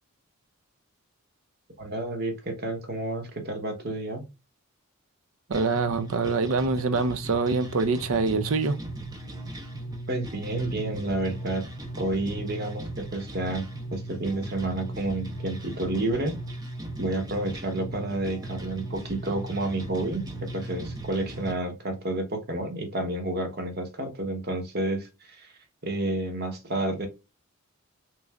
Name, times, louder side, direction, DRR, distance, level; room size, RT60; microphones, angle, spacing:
voice 1, 1.8-4.2 10.1-11.6 12.0-13.6 13.9-16.4 17.0-25.5 25.8-27.1, right 2 dB, 45° right, 0.9 m, -30 dB
sound 1, 5.5-21.5, right 1 dB, 15° right, 0.5 m, -38 dB
voice 2, 5.5-8.8, right 4 dB, 65° right, 0.5 m, -25 dB
3.7 x 3.1 x 2.3 m
head